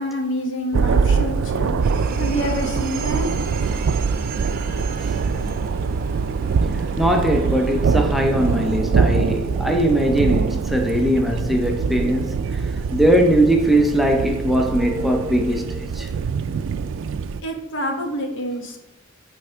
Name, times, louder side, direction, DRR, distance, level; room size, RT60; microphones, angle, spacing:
voice 1, 0.0-1.8 2.2-3.4 17.4-18.8, equal, 65° left, 1.2 m, -27 dB
Thunder, 0.7-17.4, right 5 dB, 65° right, 0.3 m, -23 dB
sound 1, 1.8-8.8, right 2 dB, 45° right, 0.8 m, -35 dB
voice 2, 6.7-16.1, right 1 dB, ahead, 0.5 m, -20 dB
8.4 x 3.5 x 4.4 m
head